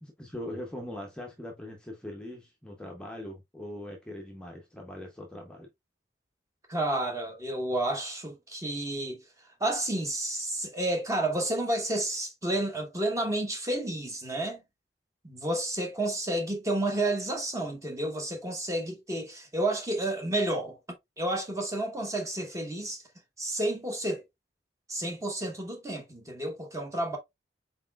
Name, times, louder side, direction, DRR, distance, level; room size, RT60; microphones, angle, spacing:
voice 1, 0.0-5.7, left 1 dB, 5° left, 0.6 m, -41 dB
voice 2, 6.7-9.2 9.6-14.6 15.2-20.8 21.2-23.0 23.4-24.2 24.9-27.2, right 1 dB, 15° right, 0.9 m, -31 dB
4.1 x 4.0 x 2.3 m
head